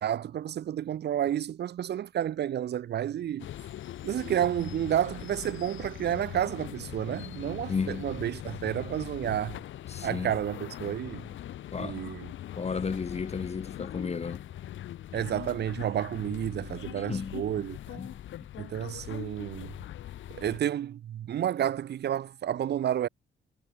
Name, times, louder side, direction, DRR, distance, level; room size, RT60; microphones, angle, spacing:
voice 1, 0.0-3.5 4.0-9.6 10.0-11.3 11.8-12.3 15.1-18.0 18.6-19.7 20.3-23.1, right 10 dB, 60° right, 0.8 m, -31 dB
sound 1, 3.4-20.6, left 12 dB, 75° left, 2.5 m, -41 dB
voice 2, 7.7-8.1 9.9-10.3 11.7-12.0 12.6-14.4 17.0-17.4 18.0-18.2, left 5 dB, 30° left, 1.5 m, -33 dB
cardioid pair, 90°, 20 cm